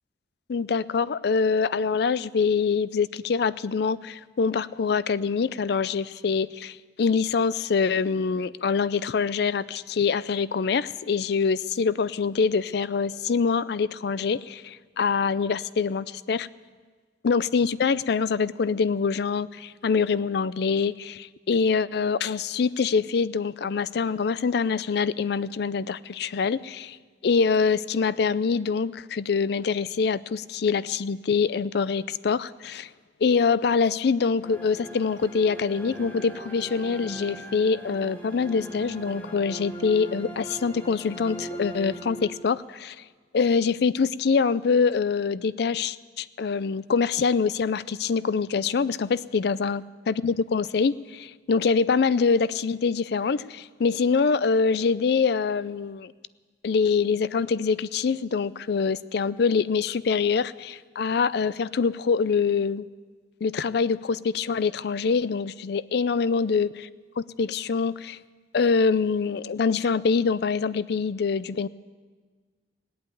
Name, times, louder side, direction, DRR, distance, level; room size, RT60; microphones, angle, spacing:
voice 1, 0.5-16.5 17.2-27.0 27.2-32.9 33.2-43.0 43.3-56.1 56.6-62.9 63.4-66.7 67.2-68.2 68.5-71.7, left 5 dB, 65° left, 18 dB, 0.4 m, -25 dB
sound 1, 34.4-42.8, right 1 dB, 10° left, 1.5 m, -40 dB
18.0 x 8.6 x 9.1 m, 1.5 s
head